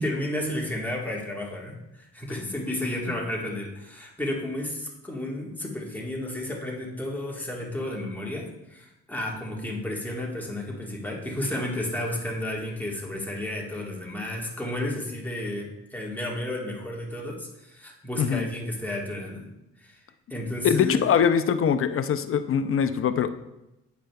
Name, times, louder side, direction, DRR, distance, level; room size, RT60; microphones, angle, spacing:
voice 1, 0.0-19.5 19.8-20.0 20.3-21.1, left 1 dB, 5° left, -2 dB, 1.4 m, -32 dB
voice 2, 20.6-23.3, left 7 dB, 45° left, 10 dB, 0.5 m, -23 dB
9.0 x 5.0 x 2.2 m, 0.93 s
cardioid pair, 90°, 30 cm